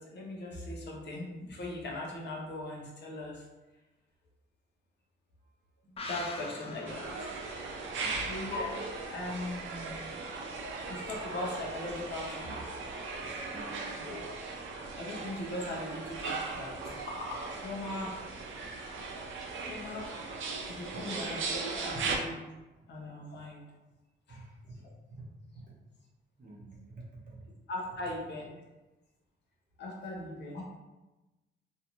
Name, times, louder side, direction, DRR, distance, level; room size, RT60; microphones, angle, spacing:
voice 1, 0.0-3.4 6.1-7.3 8.2-8.7 9.1-10.0 10.8-12.7 13.9-14.2 14.6-14.7 15.0-18.2 19.6-20.1 20.7-22.4 22.9-23.7 24.3-24.5 27.7-28.6 29.8-30.6, left 2 dB, 60° left, -2 dB, 0.7 m, -39 dB
sound 1, 6.0-9.4 9.7-9.8, left 2 dB, 30° left, 0.4 m, -46 dB
sound 2, 6.9-22.2, right 4 dB, 80° right, 0.5 m, -38 dB
voice 2, 13.5-13.9 20.9-21.0 21.9-22.1 24.3-24.8 25.5-25.7 26.4-27.4, right 2 dB, 45° right, -5 dB, 0.9 m, -48 dB
2.6 x 2.4 x 2.9 m, 1.1 s
cardioid pair, 140°, 20 cm